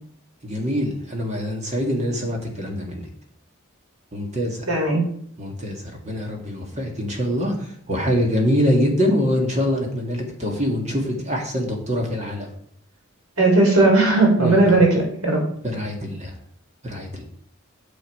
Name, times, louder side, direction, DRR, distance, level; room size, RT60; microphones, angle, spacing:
voice 1, 0.4-3.0 4.1-4.6 5.4-12.5 14.4-14.6 15.6-16.3 16.8-17.2, equal, 30° right, 1 dB, 1.9 m, -24 dB
voice 2, 4.7-5.0 13.4-15.4, right 2 dB, 85° right, 0 dB, 3.8 m, -17 dB
9.5 x 6.4 x 4.8 m, 0.66 s
head